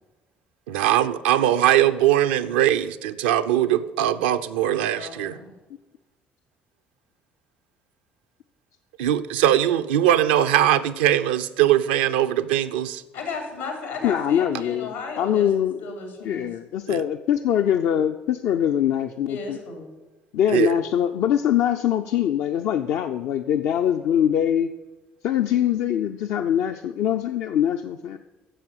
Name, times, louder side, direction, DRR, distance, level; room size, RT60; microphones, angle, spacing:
voice 1, 0.7-5.4 9.0-13.0 16.9-17.0 20.5-20.8, right 12 dB, 75° right, 11 dB, 0.5 m, -21 dB
voice 2, 4.9-5.5 13.1-15.5 15.8-16.5 19.3-19.8, left 4 dB, 85° left, 3 dB, 3.0 m, -34 dB
voice 3, 14.0-15.8 16.2-19.6 20.3-24.7 25.2-28.2, left 10 dB, 60° left, 6 dB, 0.5 m, -23 dB
10.0 x 7.1 x 7.9 m, 1.1 s
figure-of-eight pair, 50°, 5 cm